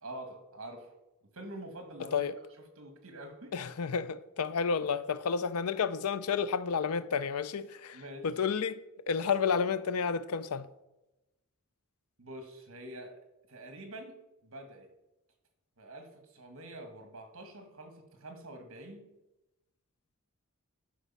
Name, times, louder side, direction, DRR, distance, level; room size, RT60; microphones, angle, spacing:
voice 1, 0.0-0.9 1.3-2.3 2.8-3.6 7.9-8.3 12.2-14.9 15.8-19.1, right 1 dB, 65° right, 1.6 m, -46 dB
voice 2, 3.5-10.7, left 6 dB, 75° left, 0.5 m, -31 dB
11.5 x 5.1 x 5.5 m
head